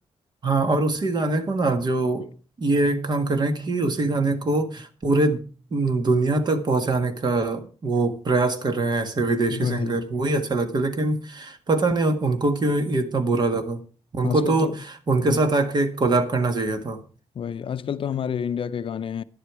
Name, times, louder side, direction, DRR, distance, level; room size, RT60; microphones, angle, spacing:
voice 1, 0.4-2.3 2.6-5.4 5.7-13.8 14.1-14.7 15.1-17.0, right 2 dB, 40° right, 1.7 m, -23 dB
voice 2, 9.5-10.0 14.2-14.8 15.2-15.4 17.4-19.2, left 7 dB, 50° left, 0.5 m, -29 dB
11.5 x 11.0 x 4.8 m
wide cardioid pair, 145°, 11 cm